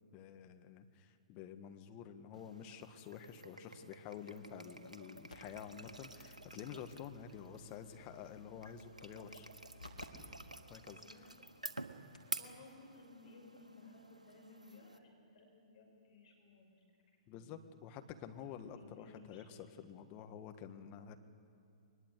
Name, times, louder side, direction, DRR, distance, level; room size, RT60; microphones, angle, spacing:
voice 1, 0.1-9.5 10.7-11.3 17.3-21.2, left 8 dB, 30° left, 7 dB, 1.6 m, -50 dB
sound 1, 2.3-15.0, right 2 dB, 85° right, 1.3 m, -51 dB
sound 2, 5.3-10.1 10.4-10.5 11.2-11.3 11.8-11.9 12.1-12.4 13.6-13.7, left 2 dB, 90° left, 2.9 m, -58 dB
voice 2, 10.9-11.3 12.4-16.8 17.3-17.5 18.7-19.6, left 2 dB, 55° left, 0 dB, 6.3 m, -59 dB
22.0 x 20.5 x 8.3 m, 2.4 s
figure-of-eight pair, 120°, 4 cm